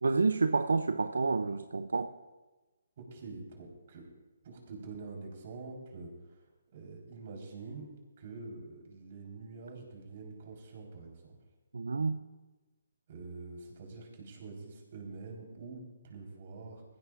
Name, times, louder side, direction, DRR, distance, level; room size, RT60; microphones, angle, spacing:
voice 1, 0.0-2.1 11.7-12.2, right 4 dB, 80° right, 11 dB, 0.5 m, -29 dB
voice 2, 3.0-4.1 4.4-6.4 6.7-7.9 8.2-11.4 13.1-16.8, right 3 dB, 50° right, 0 dB, 4.2 m, -46 dB
17.5 x 15.0 x 2.6 m, 1.2 s
hypercardioid pair, 150°, 0 cm